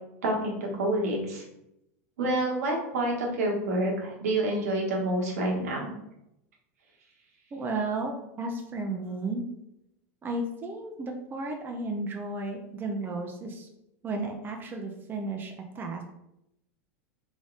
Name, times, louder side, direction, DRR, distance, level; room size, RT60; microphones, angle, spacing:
voice 1, 0.2-1.4 2.2-5.9, right 1 dB, 80° right, -1 dB, 1.4 m, -28 dB
voice 2, 7.5-9.4 10.2-13.7 14.0-16.0, right 2 dB, 25° right, 2 dB, 0.7 m, -33 dB
3.6 x 3.5 x 3.9 m, 0.84 s
hypercardioid pair, 100°, 8 cm